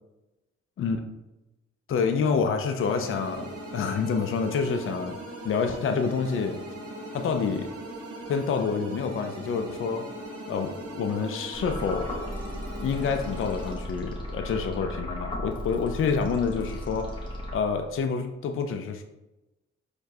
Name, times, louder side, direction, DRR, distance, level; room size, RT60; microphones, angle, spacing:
voice 1, 1.9-3.5 3.7-5.2 5.4-6.6 7.1-7.7 8.3-10.1 10.5-12.1 12.8-17.1 17.5-19.0, left 5 dB, 45° left, 6 dB, 0.5 m, -27 dB
sound 1, 2.8-13.8, right 1 dB, 50° right, 1.0 m, -40 dB
sound 2, 11.5-18.0, left 1 dB, 15° left, 1.2 m, -36 dB
4.4 x 2.3 x 2.7 m, 0.99 s
hypercardioid pair, 40°, 31 cm